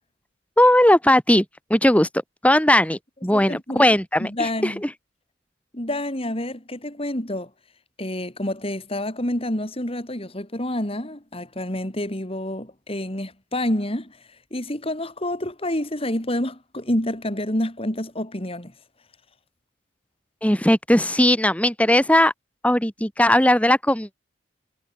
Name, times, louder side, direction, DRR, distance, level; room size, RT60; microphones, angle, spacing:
voice 1, 0.6-1.5 1.7-2.1 2.4-4.9 20.4-22.3 22.6-24.1, left 1 dB, 5° left, 3.5 m, -18 dB
voice 2, 3.3-3.9 4.2-4.8 5.7-7.5 8.0-14.2 14.5-18.7, left 1 dB, 30° left, 3.9 m, -28 dB
head